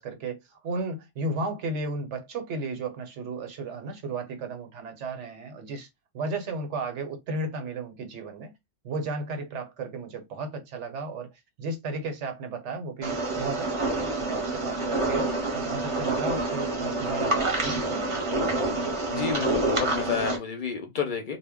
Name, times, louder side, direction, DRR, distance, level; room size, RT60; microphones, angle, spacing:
voice 1, 0.0-5.9 6.1-8.5 8.8-11.3 11.6-18.9, right 3 dB, 85° right, 1.1 m, -34 dB
sound 1, 13.0-20.4, right 2 dB, 30° right, 0.8 m, -27 dB
voice 2, 19.1-21.4, left 6 dB, 55° left, 0.6 m, -30 dB
2.1 x 2.1 x 3.5 m
omnidirectional pair, 1.2 m